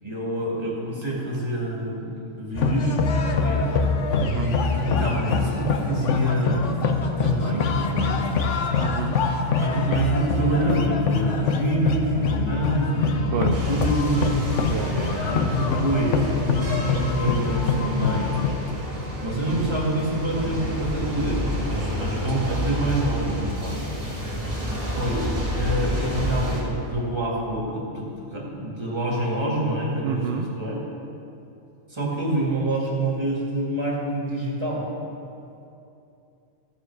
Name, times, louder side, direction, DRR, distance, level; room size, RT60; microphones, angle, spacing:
voice 1, 0.0-3.7 4.3-6.7 7.2-8.5 9.6-14.3 15.1-18.4 19.2-23.8 24.9-25.2 25.6-30.8 31.9-34.9, right 1 dB, 20° right, -5 dB, 2.2 m, -27 dB
sound 1, 2.5-18.7, left 4 dB, 65° left, 1.1 m, -24 dB
voice 2, 4.2-4.5 8.8-9.2 13.3-13.7 14.7-15.2 15.5-15.8 30.0-30.5, right 7 dB, 60° right, 3 dB, 0.8 m, -29 dB
sound 2, 13.5-26.6, equal, 45° right, 2.4 m, -29 dB
14.5 x 7.0 x 4.8 m, 2.7 s
omnidirectional pair, 1.4 m